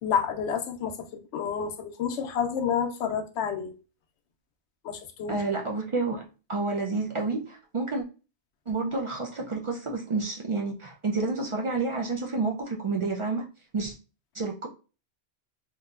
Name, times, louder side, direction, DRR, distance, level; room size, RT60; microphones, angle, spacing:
voice 1, 0.0-3.7 4.8-5.4, left 7 dB, 85° left, 0.9 m, -29 dB
voice 2, 5.3-8.0 8.7-13.5 13.7-13.9 14.3-14.7, right 3 dB, 55° right, 0.3 m, -29 dB
3.7 x 2.7 x 2.3 m
omnidirectional pair, 1.1 m